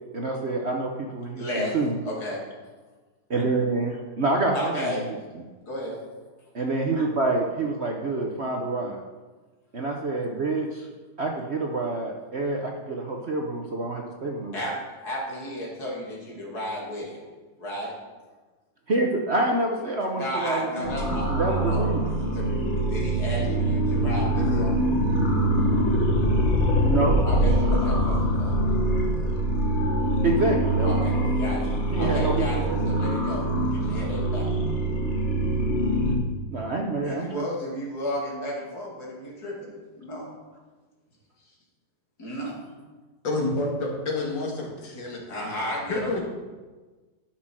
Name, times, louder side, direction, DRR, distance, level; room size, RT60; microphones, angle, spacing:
voice 1, 0.1-2.0 3.3-5.2 6.5-9.0 9.7-10.9 11.2-14.6 18.9-22.1 26.8-27.2 30.2-31.3 31.9-32.9 36.5-37.4, right 2 dB, 45° right, 1 dB, 1.0 m, -27 dB
voice 2, 1.3-1.8 2.0-2.4 4.5-5.1 5.6-6.0 14.5-17.2 17.6-17.9 20.1-22.6 22.8-24.7 27.2-28.5 30.8-34.5 37.0-40.3 42.2-42.7 45.3-46.1, equal, 55° left, -3 dB, 3.0 m, -33 dB
sound 1, 20.8-36.1, right 1 dB, 40° left, 1.6 m, -24 dB
voice 3, 43.2-46.2, left 2 dB, 80° left, 0 dB, 2.6 m, -29 dB
12.0 x 6.1 x 6.1 m, 1.3 s
omnidirectional pair, 2.0 m